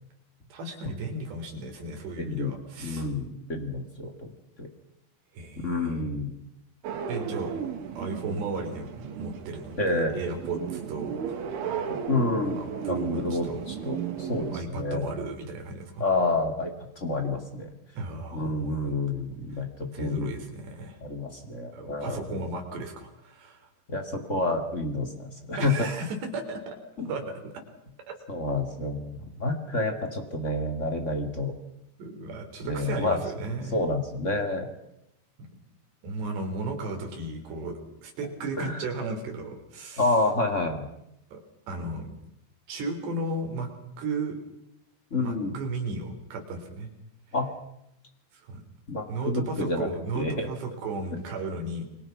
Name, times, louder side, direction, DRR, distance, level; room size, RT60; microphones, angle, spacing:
voice 1, 0.5-3.1 5.3-6.1 7.1-7.5 8.0-8.9 9.2-11.4 12.6-13.7 14.5-16.1 18.0-18.8 19.5-19.6 19.9-21.0 21.7-23.7 25.6-26.8 27.0-27.6 28.1-28.2 32.0-33.8 35.4-35.5 36.0-40.1 41.3-41.4 41.7-42.1 42.7-43.7 44.0-44.4 45.2-46.9 48.3-48.6 49.1-51.8, right 2 dB, 65° right, 4 dB, 6.0 m, -35 dB
voice 2, 2.2-2.5 2.8-4.3 4.6-4.7 5.6-6.3 9.8-10.1 11.9-12.6 12.9-15.1 16.0-17.7 18.3-20.3 21.0-22.4 23.9-25.9 27.0-27.1 28.3-31.5 32.6-33.2 33.7-34.7 38.6-38.8 40.0-40.8 45.1-45.6 47.3-47.5 48.9-49.9 50.1-50.5, left 2 dB, 45° left, 6 dB, 0.9 m, -29 dB
sound 1, 6.8-14.6, right 7 dB, 85° right, 4.7 m, -35 dB
29.5 x 23.0 x 6.0 m, 0.82 s
omnidirectional pair, 5.3 m